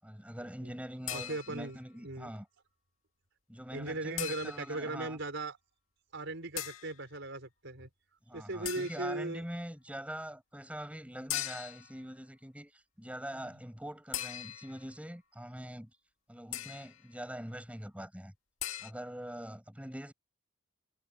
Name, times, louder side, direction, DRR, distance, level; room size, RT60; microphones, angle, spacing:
voice 1, 0.0-2.5 3.5-5.2 8.3-15.9 16.3-18.3 18.8-20.1, equal, 5° right, 6.8 m, -43 dB
sound 1, 1.1-1.8 4.2-4.8 6.6-6.9 8.6-9.2 11.3-11.9 14.1-14.8 16.5-17.0 18.6-18.9, left 12 dB, 75° left, 2.2 m, -39 dB
voice 2, 1.1-2.3 3.7-5.6 6.1-7.9 8.3-9.4 13.3-13.4, right 2 dB, 60° right, 5.2 m, -38 dB
head